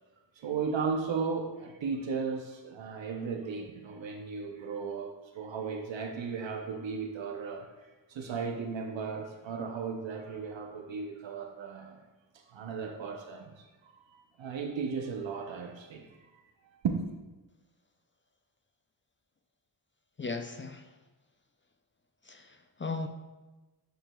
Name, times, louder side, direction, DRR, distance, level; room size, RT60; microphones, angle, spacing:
voice 1, 0.4-7.7 8.1-12.0 12.5-16.4 16.8-17.1, right 5 dB, 75° right, 3 dB, 0.7 m, -35 dB
voice 2, 20.2-20.9 22.3-23.1, left 3 dB, 25° left, 6 dB, 0.4 m, -37 dB
9.0 x 4.7 x 2.3 m, 1.2 s
cardioid pair, 60°, 46 cm